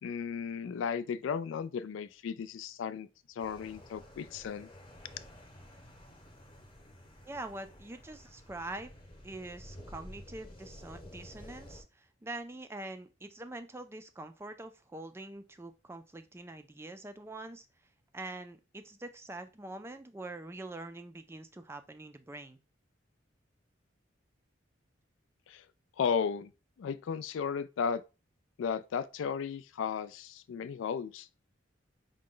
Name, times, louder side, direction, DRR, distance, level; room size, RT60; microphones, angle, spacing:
voice 1, 0.0-4.7 25.5-25.6 26.0-26.5 26.8-28.0 28.6-31.3, left 6 dB, 80° left, 0.3 m, -35 dB
sound 1, 3.4-11.8, equal, 30° left, 0.9 m, -52 dB
voice 2, 7.3-8.9 9.2-17.7 18.1-22.6, right 2 dB, 15° right, 0.3 m, -44 dB
5.0 x 2.2 x 3.7 m
head